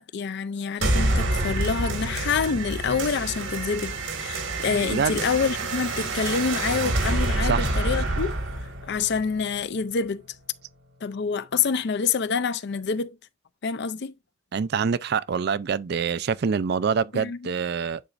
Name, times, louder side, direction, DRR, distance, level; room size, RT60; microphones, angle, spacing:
voice 1, 0.0-8.4 8.8-10.2 11.0-13.2 13.6-14.1 17.1-17.4, left 5 dB, 60° left, 0.5 m, -27 dB
sound 1, 0.8-9.8, right 2 dB, 85° right, 1.9 m, -27 dB
voice 2, 4.8-5.2 7.4-7.7 14.5-18.1, right 6 dB, 55° right, 0.4 m, -26 dB
10.0 x 4.0 x 2.5 m
head